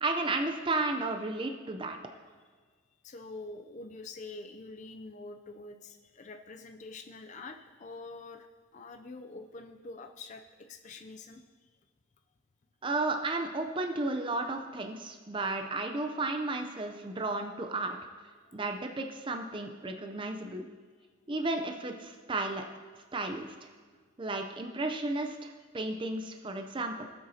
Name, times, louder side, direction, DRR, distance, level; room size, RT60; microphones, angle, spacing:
voice 1, 0.0-2.0 12.8-18.0 18.5-20.7 21.3-22.6 23.1-23.7 24.2-27.1, right 2 dB, 25° right, 5 dB, 0.5 m, -33 dB
voice 2, 3.0-8.5 8.7-11.4 18.5-18.6, left 3 dB, 35° left, 5 dB, 0.4 m, -46 dB
17.5 x 7.7 x 2.8 m, 1.5 s
head